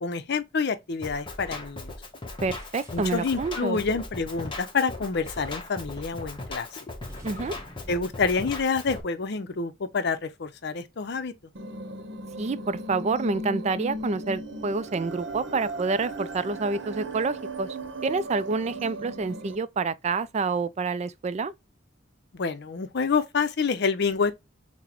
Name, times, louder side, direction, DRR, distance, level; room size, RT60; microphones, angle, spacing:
voice 1, 0.0-1.9 2.9-6.7 7.9-11.3 22.3-24.3, left 5 dB, 60° left, 0.6 m, -27 dB
Drum kit, 1.0-9.0, left 2 dB, 25° left, 0.9 m, -38 dB
voice 2, 2.4-3.8 7.2-7.5 12.4-17.8 18.0-21.5, right 4 dB, 35° right, 0.4 m, -28 dB
sound 1, 2.6-3.6 5.2-5.7 5.9-6.2 7.0-9.4, equal, 15° right, 1.1 m, -51 dB
sound 2, 11.6-19.6, right 1 dB, 65° right, 0.8 m, -37 dB
5.9 x 2.1 x 2.9 m
head